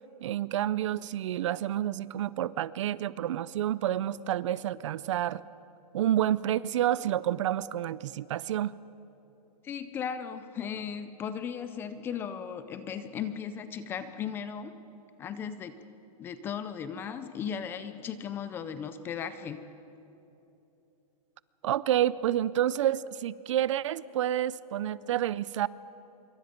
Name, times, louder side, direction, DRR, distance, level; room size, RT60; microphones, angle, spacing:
voice 1, 0.2-5.4 5.9-8.7 21.6-25.7, right 12 dB, 50° right, 19 dB, 0.5 m, -29 dB
voice 2, 9.6-14.7 15.2-15.7 16.2-19.6, left 7 dB, 10° left, 12 dB, 0.4 m, -36 dB
26.0 x 23.5 x 5.2 m, 3.0 s
hypercardioid pair, 165°, 20 cm